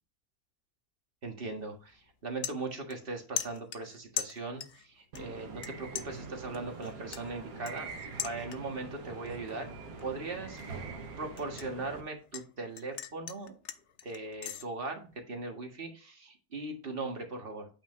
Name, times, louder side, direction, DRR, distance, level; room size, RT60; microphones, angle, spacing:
voice 1, 1.2-7.9 8.2-9.7 10.0-10.6 11.2-13.5 14.0-17.7, right 3 dB, 35° right, 3 dB, 1.8 m, -39 dB
sound 1, 1.5-1.7 2.1-3.1 3.4-4.9 5.2-5.7 6.0-8.9 9.3-9.6 10.0-12.5 12.8-14.6, left 9 dB, 55° left, 0.9 m, -40 dB
sound 2, 5.1-12.0, right 4 dB, 70° right, 1.7 m, -44 dB
8.5 x 5.8 x 2.6 m, 0.34 s
omnidirectional pair, 1.6 m